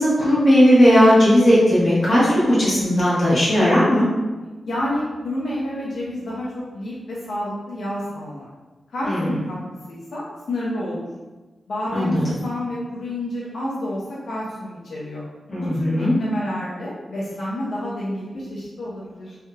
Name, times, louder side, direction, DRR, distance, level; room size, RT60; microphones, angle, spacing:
voice 1, 0.0-4.1 9.0-9.3 11.9-12.4 15.5-16.2, equal, 35° left, -9 dB, 1.2 m, -16 dB
voice 2, 4.6-8.5 8.9-9.6 9.9-11.1 11.7-15.2 15.6-19.4, left 1 dB, 75° left, -7 dB, 0.6 m, -29 dB
3.3 x 2.7 x 2.3 m, 1.2 s
wide cardioid pair, 170°, 0 cm